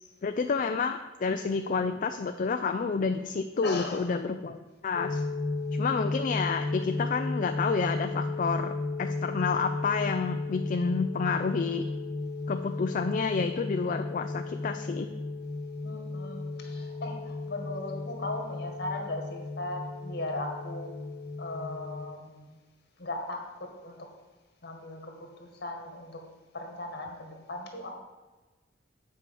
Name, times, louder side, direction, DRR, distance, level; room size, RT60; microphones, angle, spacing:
voice 1, 0.2-5.2 5.8-8.7 9.0-11.8 12.5-15.1, left 5 dB, 45° left, 7 dB, 0.4 m, -29 dB
voice 2, 3.6-4.1 15.8-20.9 21.4-22.5 23.0-24.0 24.6-26.2 26.5-27.9, left 2 dB, 60° left, 3 dB, 1.7 m, -38 dB
sound 1, 4.9-22.1, left 3 dB, 30° left, 1.2 m, -34 dB
8.6 x 4.8 x 6.9 m, 1.2 s
head